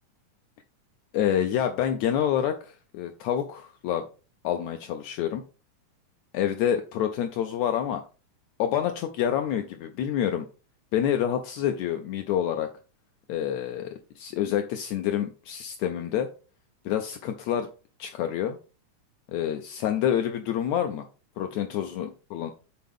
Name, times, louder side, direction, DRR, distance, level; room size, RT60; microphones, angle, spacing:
voice 1, 1.1-4.1 4.4-5.4 6.3-8.0 8.6-10.5 10.9-12.7 13.3-16.3 16.8-17.7 18.0-18.6 19.3-21.1 21.4-22.5, left 10 dB, 80° left, 6 dB, 1.7 m, -27 dB
7.7 x 4.1 x 3.6 m, 0.33 s
omnidirectional pair, 3.7 m